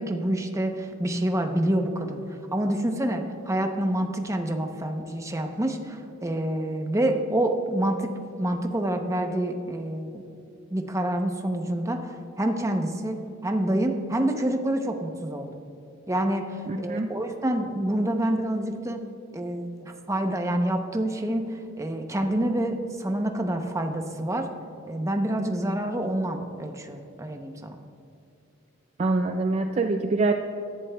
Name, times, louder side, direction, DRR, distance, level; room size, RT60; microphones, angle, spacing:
voice 1, 0.0-2.2 2.5-8.1 8.4-10.2 10.7-15.6 16.1-19.0 19.3-24.5 24.9-27.8, right 1 dB, 15° right, 4 dB, 0.7 m, -27 dB
voice 2, 16.7-17.1 29.0-30.3, right 3 dB, 35° right, 5 dB, 0.4 m, -25 dB
17.5 x 11.0 x 2.3 m, 2.6 s
head